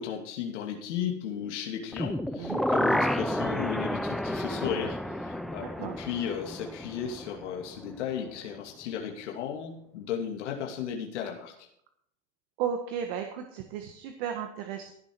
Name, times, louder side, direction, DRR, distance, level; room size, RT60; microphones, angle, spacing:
voice 1, 0.0-11.7, left 8 dB, 75° left, 1 dB, 2.6 m, -35 dB
sound 1, 1.9-7.9 8.3-8.4, equal, ahead, 0.4 m, -31 dB
voice 2, 5.6-6.0 12.6-14.9, right 8 dB, 60° right, 5 dB, 1.6 m, -34 dB
16.0 x 7.2 x 4.7 m, 0.71 s
hypercardioid pair, 120°, 36 cm